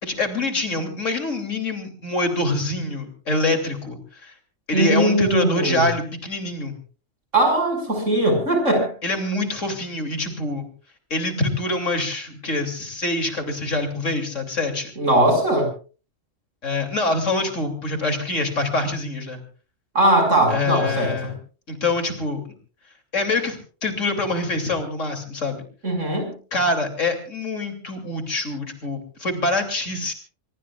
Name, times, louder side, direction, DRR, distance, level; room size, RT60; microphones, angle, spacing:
voice 1, 0.0-4.3 4.7-6.7 9.0-10.7 11.1-14.9 16.6-19.4 20.5-21.4 21.7-22.4 23.1-25.6 26.5-30.1, left 2 dB, 85° left, 5 dB, 3.5 m, -25 dB
voice 2, 4.7-5.8 7.3-8.9 15.0-15.7 19.9-21.1 25.8-26.3, right 1 dB, 85° right, 4 dB, 6.5 m, -19 dB
24.5 x 22.5 x 2.4 m, 0.37 s
omnidirectional pair, 1.3 m